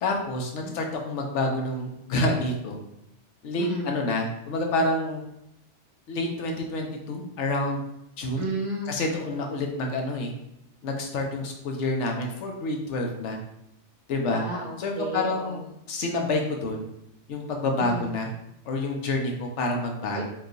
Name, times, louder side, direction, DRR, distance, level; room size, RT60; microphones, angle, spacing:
voice 1, 0.0-2.8 3.4-5.2 6.1-7.8 8.2-8.5 8.9-10.3 10.8-13.4 14.1-14.4 14.8-15.6 15.9-16.8 17.3-18.3 18.6-20.2, left 2 dB, 75° left, 1 dB, 0.9 m, -28 dB
voice 2, 3.6-3.9 8.4-8.9 14.3-15.7 17.8-18.2 20.1-20.2, right 2 dB, 55° right, -1 dB, 0.7 m, -33 dB
3.0 x 2.3 x 3.7 m, 0.81 s
omnidirectional pair, 1.2 m